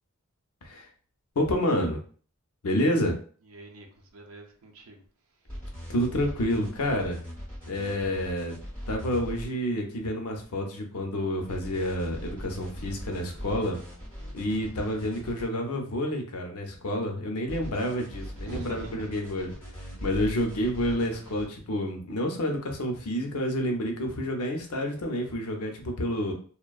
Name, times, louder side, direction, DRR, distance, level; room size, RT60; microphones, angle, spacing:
voice 1, 1.4-2.0 2.6-3.1 5.9-7.2 7.7-8.5 8.9-13.8 14.3-19.5 20.0-26.3, equal, 85° left, 3 dB, 0.6 m, -29 dB
voice 2, 3.5-3.9 4.1-5.0 14.5-14.9 18.4-19.2, right 1 dB, 70° right, 1 dB, 0.6 m, -43 dB
sound 1, 5.5-9.5 11.5-15.5 17.5-21.5, equal, 5° left, 1.2 m, -40 dB
2.5 x 2.1 x 2.3 m, 0.43 s
head